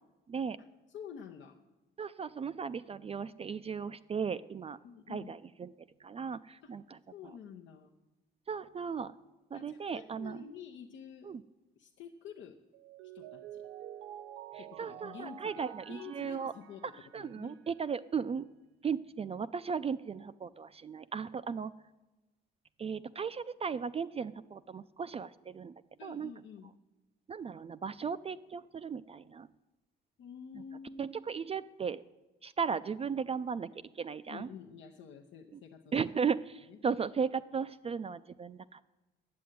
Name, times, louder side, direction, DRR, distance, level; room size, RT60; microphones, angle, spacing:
voice 1, 0.9-1.6 4.8-5.3 6.6-6.7 7.1-7.9 9.5-11.3 11.8-12.6 13.1-13.6 14.6-17.6 26.0-26.7 30.2-31.2 34.3-35.9 36.7-36.8, left 7 dB, 75° left, 1 dB, 0.8 m, -49 dB
voice 2, 2.0-4.8 5.1-5.7 6.0-7.0 8.5-9.2 9.5-10.4 11.2-11.4 14.5-16.5 17.1-18.5 18.8-21.7 22.8-25.7 26.0-26.3 27.3-29.5 30.5-30.6 31.0-32.0 32.4-33.7 34.0-34.5 35.5-35.6 35.9-38.8, right 6 dB, 30° right, 13 dB, 0.4 m, -36 dB
Mallet percussion, 12.7-17.7, right 11 dB, 90° right, 0.5 m, -49 dB
9.5 x 7.6 x 9.2 m, 1.1 s
cardioid pair, 90°, 20 cm